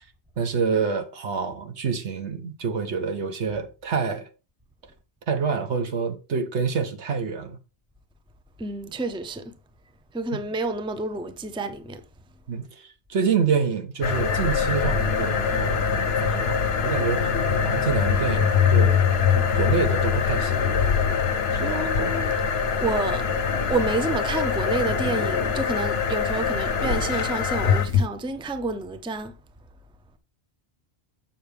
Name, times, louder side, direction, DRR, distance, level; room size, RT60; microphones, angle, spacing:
voice 1, 0.4-4.3 5.3-7.6 12.5-17.3 17.6-19.0 19.5-20.5 21.5-22.2, right 5 dB, 85° right, 1.4 m, -27 dB
voice 2, 8.6-9.5 10.1-12.0 21.6-22.3 22.8-23.3 23.7-29.3, right 3 dB, 5° right, 0.5 m, -29 dB
sound 1, 14.0-28.1, left 6 dB, 65° left, 1.0 m, -23 dB
7.6 x 6.7 x 3.4 m
omnidirectional pair, 1.1 m